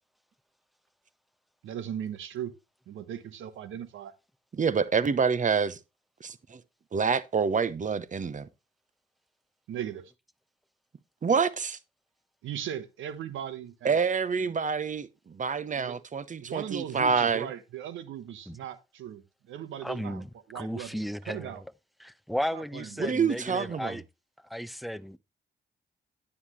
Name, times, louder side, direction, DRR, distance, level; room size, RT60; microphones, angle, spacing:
voice 1, 1.6-2.5 2.9-4.1 9.7-10.1 12.4-14.0 14.4-14.5 15.6-16.0 16.4-20.2 20.5-21.0 21.3-21.6 22.5-23.1, right 10 dB, 75° right, 1.0 m, -38 dB
voice 2, 4.5-5.8 6.2-6.6 6.9-8.5 11.2-11.8 13.8-17.5 23.0-23.9, right 5 dB, 40° right, 0.9 m, -27 dB
voice 3, 19.8-21.6 22.0-24.0 24.4-25.2, equal, ahead, 0.6 m, -35 dB
9.6 x 8.6 x 3.1 m
hypercardioid pair, 45°, 20 cm